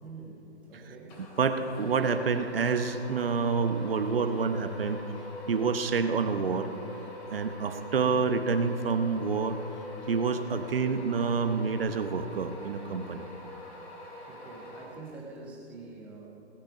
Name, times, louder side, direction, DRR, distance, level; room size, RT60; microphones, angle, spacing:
voice 1, 0.0-1.2 14.3-16.3, right 3 dB, 5° right, -2 dB, 0.6 m, -46 dB
sound 1, 1.1-15.4, left 1 dB, 20° left, 2.7 m, -44 dB
voice 2, 1.4-5.0 5.5-6.7 7.3-9.6 10.1-13.3, right 5 dB, 55° right, 9 dB, 1.1 m, -28 dB
18.0 x 9.9 x 5.0 m, 2.6 s
figure-of-eight pair, 145°, 34 cm